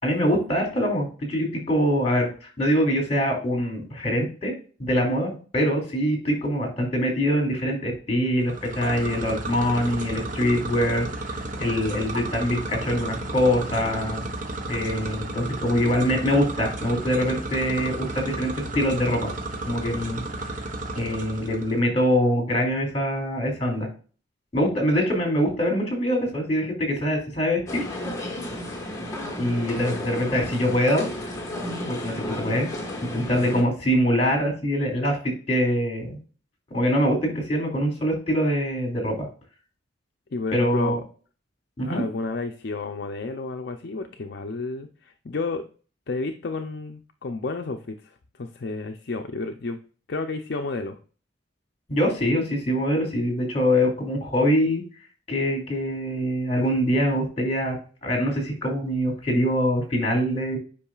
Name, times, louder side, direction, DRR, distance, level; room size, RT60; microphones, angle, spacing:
voice 1, 0.0-2.3 2.6-4.5 4.8-14.2 14.7-19.3 19.7-20.2 21.0-23.9 24.5-27.8 29.4-31.1 31.8-32.7 33.1-36.2 36.7-39.3 40.5-41.0 41.8-42.0 51.9-54.8 55.3-57.8 58.0-60.6, equal, 30° left, 2 dB, 2.5 m, -24 dB
sound 1, 8.4-21.8, right 2 dB, 40° right, 1.0 m, -33 dB
sound 2, 27.7-33.6, left 1 dB, 15° left, 1.4 m, -33 dB
voice 2, 40.3-41.0 41.8-45.6 46.1-49.8 50.1-51.0, left 3 dB, 55° left, 5 dB, 0.5 m, -31 dB
8.5 x 5.3 x 2.4 m, 0.38 s
head